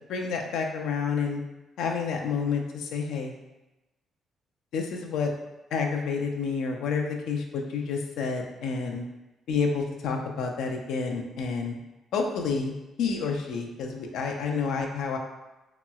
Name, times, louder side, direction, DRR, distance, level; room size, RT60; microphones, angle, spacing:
voice 1, 0.1-1.4 1.8-3.3 4.7-5.3 5.7-9.0 9.5-11.8 12.1-15.2, left 5 dB, 85° left, 2 dB, 0.4 m, -29 dB
2.9 x 2.9 x 2.3 m, 1.0 s
cardioid pair, 90°, 0 cm